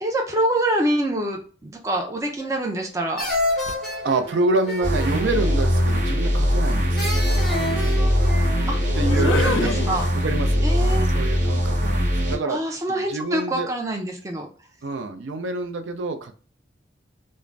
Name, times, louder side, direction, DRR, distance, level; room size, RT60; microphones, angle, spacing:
voice 1, 0.0-3.3 8.7-8.8 9.2-10.0 10.6-11.1 12.4-14.5, right 1 dB, 15° right, 2 dB, 0.3 m, -25 dB
sound 1, 2.4-2.9 3.2-6.3 7.0-8.8, left 1 dB, ahead, 0.9 m, -29 dB
sound 2, 3.3-3.9 5.2-10.5, left 4 dB, 80° left, 0.4 m, -33 dB
voice 2, 4.0-7.4 8.9-12.6 12.9-13.7 14.8-16.3, right 3 dB, 85° right, 7 dB, 0.4 m, -27 dB
sound 3, 4.8-12.4, equal, 45° right, 0.8 m, -21 dB
2.5 x 2.1 x 3.1 m, 0.41 s
head